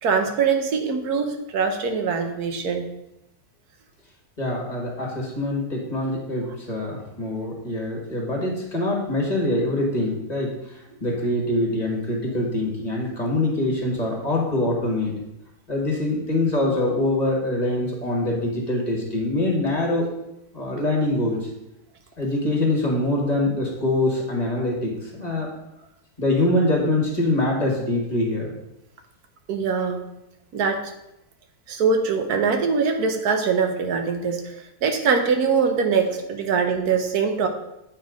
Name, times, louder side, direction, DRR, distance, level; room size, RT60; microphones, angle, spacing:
voice 1, 0.0-2.9 29.5-30.0 30.5-30.9 31.7-34.6 34.8-37.5, right 5 dB, 75° right, 5 dB, 1.4 m, -22 dB
voice 2, 4.4-15.1 15.7-20.1 20.5-21.5 22.2-25.5 26.2-28.5, left 1 dB, 25° left, -2 dB, 1.8 m, -24 dB
8.6 x 4.4 x 5.1 m, 0.86 s
omnidirectional pair, 1.6 m